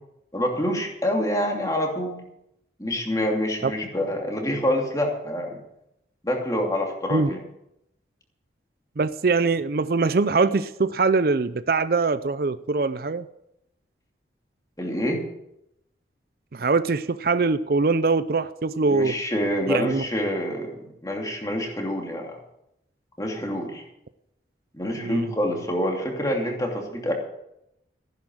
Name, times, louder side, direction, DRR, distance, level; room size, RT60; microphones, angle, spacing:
voice 1, 0.3-2.2 2.8-5.6 6.2-7.4 14.8-15.2 18.9-20.8 21.0-22.4 23.2-23.8 24.7-27.1, equal, 20° left, 1 dB, 2.8 m, -26 dB
voice 2, 9.0-13.3 16.5-19.2 19.7-20.0 25.0-25.3, right 4 dB, 55° right, 14 dB, 0.5 m, -23 dB
15.5 x 10.5 x 6.4 m, 0.82 s
head